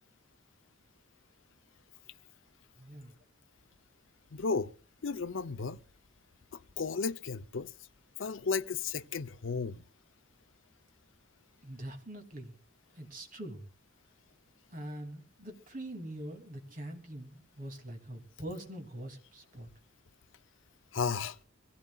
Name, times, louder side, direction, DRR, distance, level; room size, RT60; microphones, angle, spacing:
voice 1, 2.8-3.1 11.6-12.5 12.9-13.6 14.7-19.7, right 1 dB, 40° right, 2.7 m, -43 dB
voice 2, 4.3-4.7 5.0-5.8 6.5-7.7 8.2-9.8 20.9-21.4, left 5 dB, 70° left, 0.6 m, -34 dB
24.0 x 16.5 x 2.3 m
head